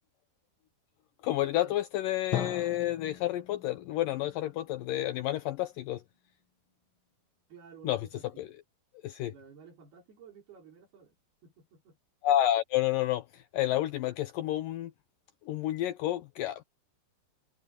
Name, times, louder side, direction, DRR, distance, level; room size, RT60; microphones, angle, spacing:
voice 1, 1.2-6.0 7.8-8.0 8.4-8.5 9.0-9.3 12.2-14.9 15.5-16.6, left 13 dB, 90° left, 1.9 m, -30 dB
Drum, 2.3-6.0, left 10 dB, 65° left, 1.2 m, -39 dB
voice 2, 7.5-8.5 9.3-11.1 11.4-12.0, right 6 dB, 65° right, 6.2 m, -53 dB
omnidirectional pair, 4.8 m